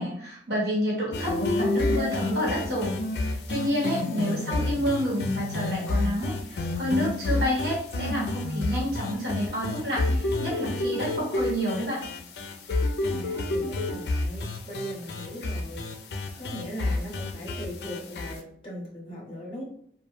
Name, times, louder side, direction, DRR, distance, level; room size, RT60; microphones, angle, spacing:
voice 1, 0.0-3.0 3.2-12.0, equal, 70° right, -5 dB, 1.2 m, -29 dB
sound 1, 1.1-18.4, left 2 dB, 70° left, 0.4 m, -29 dB
voice 2, 4.1-4.7 13.0-15.8 16.3-19.6, equal, 30° left, -3 dB, 0.8 m, -39 dB
2.2 x 2.2 x 3.1 m, 0.67 s
head